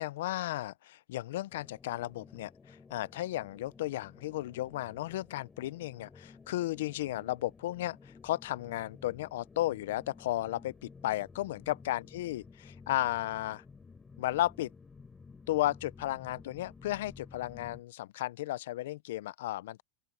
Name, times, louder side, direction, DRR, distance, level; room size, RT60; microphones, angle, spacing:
voice 1, 0.0-8.0 8.2-13.6 14.2-14.7 15.5-19.8, left 15 dB, 75° left, 0.4 m, -34 dB
sound 1, 1.5-17.8, left 4 dB, 10° left, 3.2 m, -54 dB
open air
supercardioid pair, 180°, 0 cm